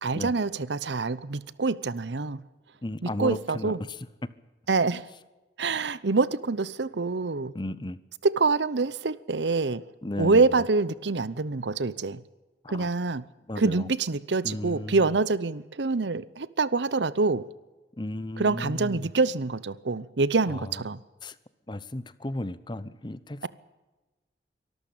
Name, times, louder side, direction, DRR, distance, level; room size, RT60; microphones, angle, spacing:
voice 1, 0.0-2.4 3.0-3.8 4.7-5.0 5.6-7.5 8.2-9.8 10.2-12.2 12.7-13.2 13.6-17.5 18.4-21.0, right 3 dB, 85° right, 0.8 m, -26 dB
voice 2, 2.8-4.0 7.5-8.0 10.0-10.6 12.6-12.9 13.5-13.9 14.4-15.0 18.0-19.1 20.5-20.7 21.2-21.4 21.7-23.4, left 1 dB, 25° left, 0.8 m, -35 dB
24.0 x 13.5 x 8.7 m
head